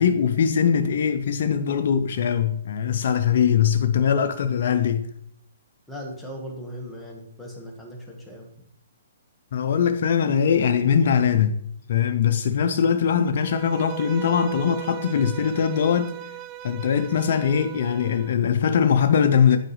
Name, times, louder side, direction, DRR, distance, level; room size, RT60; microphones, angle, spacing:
voice 1, 0.0-5.1 9.5-11.6 11.9-16.3 16.6-19.6, left 7 dB, 60° left, 0.5 m, -21 dB
voice 2, 5.9-8.5, equal, 5° left, 1.5 m, -38 dB
Bowed string instrument, 13.4-18.4, right 14 dB, 30° right, 0.4 m, -38 dB
9.0 x 4.7 x 3.2 m
hypercardioid pair, 140°, 0 cm